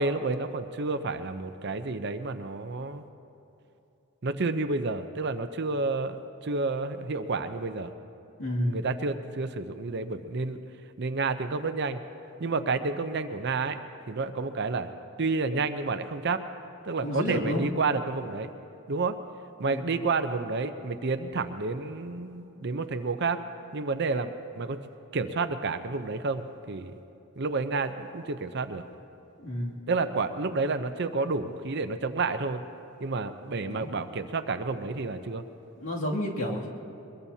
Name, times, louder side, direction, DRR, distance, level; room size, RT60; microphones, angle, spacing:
voice 1, 0.0-3.0 4.2-6.2 6.4-7.9 8.6-10.6 11.0-12.0 12.4-13.8 14.1-14.9 15.2-16.4 16.8-18.5 18.9-19.2 19.6-23.4 23.7-24.8 25.1-26.9 27.4-28.8 29.9-32.6 33.0-35.4, right 3 dB, 50° right, 9 dB, 0.7 m, -30 dB
voice 2, 8.4-8.8 17.0-17.6 19.7-19.9 29.4-29.8 33.6-33.9 35.8-36.7, equal, 65° left, -3 dB, 2.5 m, -30 dB
23.5 x 22.0 x 2.8 m, 2.8 s
head